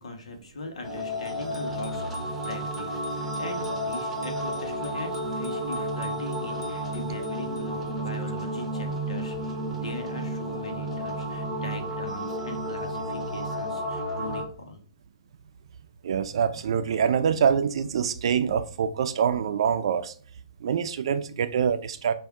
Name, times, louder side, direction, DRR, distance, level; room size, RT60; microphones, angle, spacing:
voice 1, 0.0-14.8, left 2 dB, 80° left, 1.3 m, -40 dB
sound 1, 0.8-14.4, right 1 dB, 5° right, 0.9 m, -32 dB
Bicycle bell, 1.2-7.9, left 4 dB, 55° left, 1.2 m, -51 dB
voice 2, 16.0-20.1 20.6-22.1, right 7 dB, 55° right, 0.5 m, -25 dB
5.3 x 2.7 x 3.6 m
hypercardioid pair, 155°, 3 cm